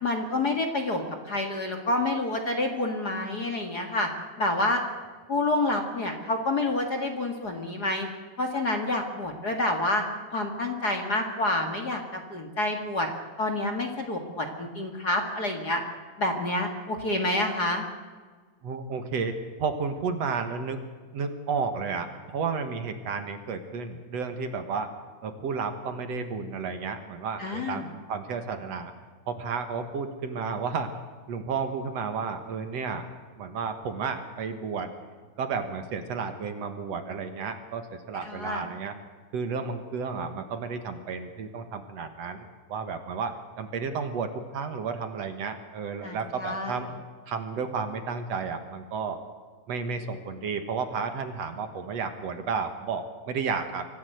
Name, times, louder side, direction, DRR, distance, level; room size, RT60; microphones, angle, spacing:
voice 1, 0.0-4.1 4.4-4.8 5.3-8.1 8.4-10.0 10.3-13.1 13.4-15.8 16.2-17.8 27.4-27.8 38.2-38.6 46.0-46.8, left 2 dB, 35° left, 4 dB, 2.0 m, -28 dB
voice 2, 18.6-20.8 21.1-24.9 25.2-28.9 29.3-30.9 31.3-33.1 33.4-34.9 35.4-38.9 39.3-46.9 47.3-49.2 49.7-53.9, right 5 dB, 60° right, 7 dB, 2.5 m, -32 dB
24.5 x 14.5 x 7.9 m, 1.5 s
omnidirectional pair, 3.5 m